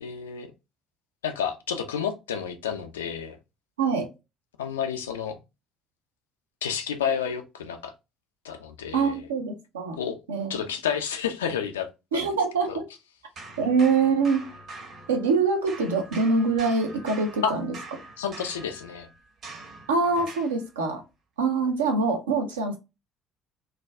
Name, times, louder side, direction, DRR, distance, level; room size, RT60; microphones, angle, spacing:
voice 1, 0.0-0.5 1.2-3.4 4.6-5.4 6.6-7.9 8.4-9.3 10.0-10.2 10.5-12.3 12.7-12.8 17.4-17.5 18.2-19.1, left 7 dB, 75° left, 0.4 m, -30 dB
voice 2, 8.9-10.0 10.3-10.5 12.1-12.8 13.6-14.4 15.1-17.7 19.9-21.0 21.4-22.8, right 4 dB, 80° right, 0.5 m, -24 dB
sound 1, 13.4-15.4 15.7-20.6, right 3 dB, 50° right, 1.0 m, -44 dB
2.3 x 2.2 x 3.2 m
figure-of-eight pair, 50°, 0 cm